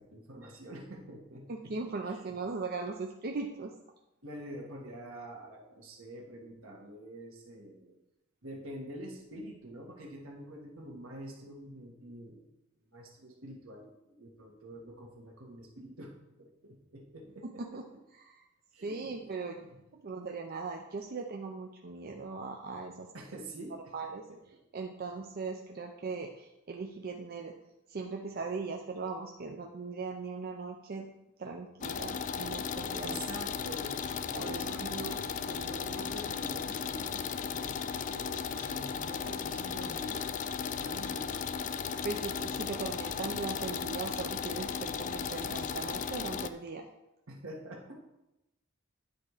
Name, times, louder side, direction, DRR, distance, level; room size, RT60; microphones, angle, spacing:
voice 1, 0.0-1.7 2.0-2.3 4.2-8.0 8.4-12.5 12.9-16.1 16.4-17.8 18.7-19.8 23.1-23.9 24.3-24.4 32.8-37.7 38.1-41.4 47.3-48.0, right 1 dB, 75° right, 0 dB, 1.6 m, -46 dB
voice 2, 1.5-3.7 17.4-17.8 18.2-18.4 18.8-19.5 19.9-23.1 23.9-24.2 24.7-27.5 27.9-31.1 31.4-33.2 34.3-34.6 42.0-46.9, right 4 dB, 45° right, 2 dB, 0.5 m, -39 dB
sound 1, 31.8-46.5, left 6 dB, 40° left, 0.3 m, -36 dB
9.7 x 4.2 x 4.9 m, 0.92 s
head